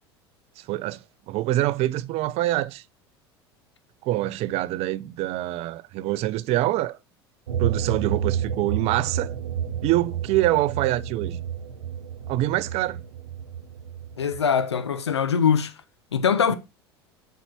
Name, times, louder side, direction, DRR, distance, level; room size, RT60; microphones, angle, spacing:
voice 1, 0.6-2.8 4.0-7.0 7.6-9.3 9.8-11.4 12.3-13.0, right 16 dB, 50° right, 0.6 m, -25 dB
sound 1, 7.5-14.4, right 8 dB, 75° right, 1.1 m, -30 dB
voice 2, 14.2-15.7 16.1-16.6, left 7 dB, 85° left, 1.0 m, -22 dB
8.1 x 4.6 x 6.0 m
hypercardioid pair, 75°, 14 cm